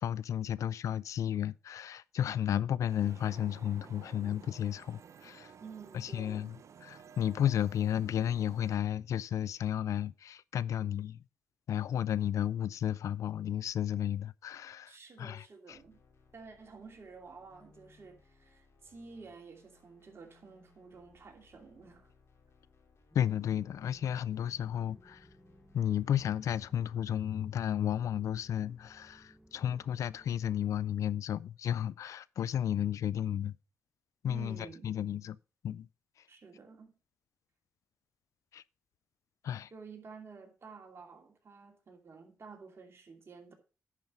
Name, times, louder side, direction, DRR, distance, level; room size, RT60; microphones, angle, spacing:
voice 1, 0.0-5.5 5.9-6.6 6.8-11.2 11.7-15.8 23.1-25.3 25.7-33.6 34.2-35.4 35.6-35.9 38.5-38.6 39.4-39.7, left 10 dB, 75° left, 0.3 m, -33 dB
sound 1, 2.9-8.8, right 7 dB, 65° right, 0.6 m, -54 dB
voice 2, 5.6-6.5 14.9-16.0 16.3-22.1 34.3-34.9 36.3-36.9 39.7-43.5, right 5 dB, 50° right, 2.6 m, -51 dB
sound 2, 15.7-26.6, left 3 dB, 60° left, 2.6 m, -65 dB
sound 3, 23.1-31.0, equal, 5° right, 0.8 m, -60 dB
10.5 x 4.7 x 5.3 m
cardioid pair, 65°, 5 cm